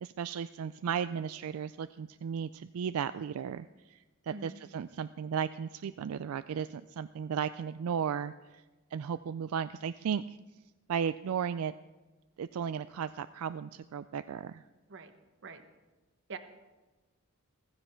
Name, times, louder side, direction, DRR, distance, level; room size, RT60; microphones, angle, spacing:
voice 1, 0.0-8.6 8.9-10.4 10.9-11.7 12.4-14.6, right 7 dB, 85° right, 13 dB, 0.3 m, -35 dB
voice 2, 4.3-4.5 14.9-15.1 15.4-15.6 16.3-16.4, right 4 dB, 60° right, 8 dB, 1.1 m, -43 dB
15.5 x 15.0 x 4.5 m, 1.2 s
head